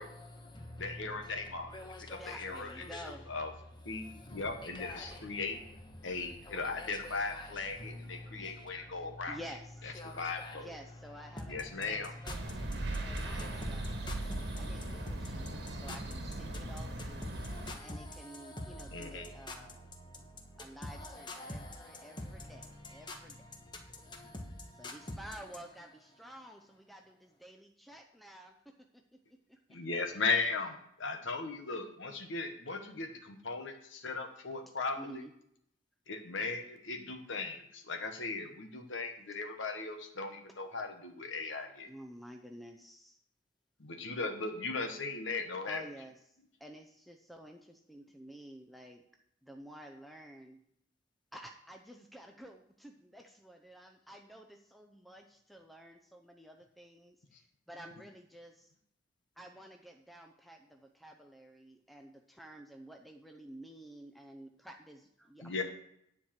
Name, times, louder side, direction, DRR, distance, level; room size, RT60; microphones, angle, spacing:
voice 1, 0.0-9.4 9.9-25.7 26.1-26.3, left 1 dB, 25° left, 1.2 m, -47 dB
voice 2, 0.8-1.7 2.1-3.0 3.3-3.5 3.8-5.6 6.0-9.4 9.8-10.8 11.5-12.1 18.9-19.3 29.7-35.2 36.1-41.9 43.8-45.8 65.4-65.6, left 4 dB, 70° left, 1.2 m, -37 dB
voice 3, 2.2-3.2 6.1-6.2 8.7-8.9 9.3-10.0 10.5-17.3 17.8-19.8 20.6-22.6 22.9-23.3 24.8-29.0 29.5-29.8 35.0-35.3 41.8-43.2 45.7-46.1 46.6-49.0 49.4-50.6 51.3-58.7 59.4-65.6, equal, ahead, 0.6 m, -51 dB
sound 1, 12.2-17.7, right 1 dB, 55° right, 1.4 m, -38 dB
10.0 x 4.7 x 7.3 m
head